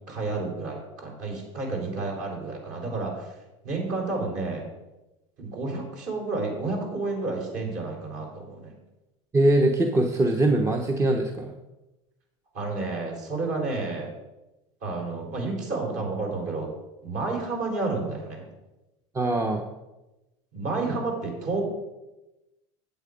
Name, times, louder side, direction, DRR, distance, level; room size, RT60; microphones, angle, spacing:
voice 1, 0.1-3.4 3.6-4.6 5.4-8.7 12.5-14.1 14.8-16.7 17.0-18.4 20.5-21.6, right 3 dB, 50° right, 0 dB, 4.0 m, -30 dB
voice 2, 9.3-11.5 19.1-19.6, right 1 dB, 15° right, 3 dB, 0.9 m, -22 dB
8.4 x 8.1 x 5.1 m, 1.0 s
supercardioid pair, 110°, 17 cm